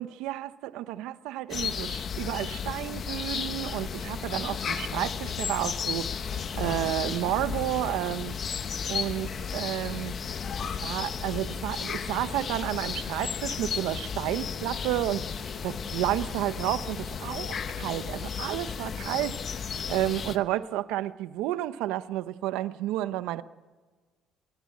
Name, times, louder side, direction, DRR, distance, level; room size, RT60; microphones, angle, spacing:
voice 1, 0.0-8.3 8.9-10.2 10.6-23.4, right 14 dB, 80° right, 13 dB, 0.8 m, -31 dB
sound 1, 1.5-20.4, left 6 dB, 30° left, 1.0 m, -34 dB
24.0 x 21.0 x 8.5 m, 1.4 s
cardioid pair, 175°, 0 cm